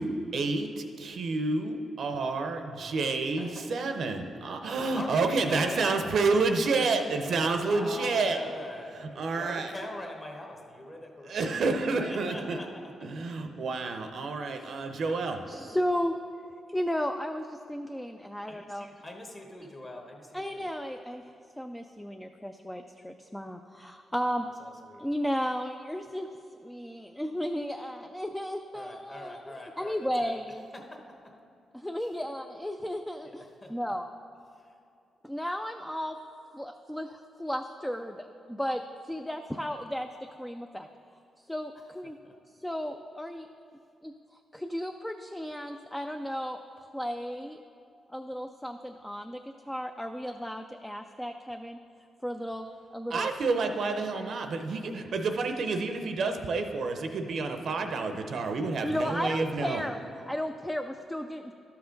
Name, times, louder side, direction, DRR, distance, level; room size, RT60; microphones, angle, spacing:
voice 1, 0.0-8.4 9.2-9.7 11.3-12.6 13.0-15.4 53.1-59.8, right 3 dB, 60° right, 6 dB, 0.6 m, -29 dB
voice 2, 4.9-6.0 7.5-13.2 14.5-14.9 19.0-20.7 24.6-25.0 28.7-30.3 30.7-31.3 32.0-32.2 33.2-33.9 34.5-34.7 42.0-42.4 58.9-59.0, left 1 dB, 25° left, 2 dB, 1.1 m, -43 dB
voice 3, 15.5-16.2 16.7-18.9 20.3-21.2 21.6-24.5 25.0-26.3 26.6-29.4 29.8-30.6 31.7-33.4 33.7-34.1 35.2-36.2 36.5-40.1 40.4-40.9 41.5-42.2 42.6-43.5 44.0-46.6 46.9-47.6 48.1-49.4 49.7-51.8 52.2-52.7 52.9-53.3 58.8-60.0 60.3-61.5, equal, 5° left, 5 dB, 0.3 m, -34 dB
12.5 x 5.8 x 3.8 m, 2.5 s
cardioid pair, 105°, 0 cm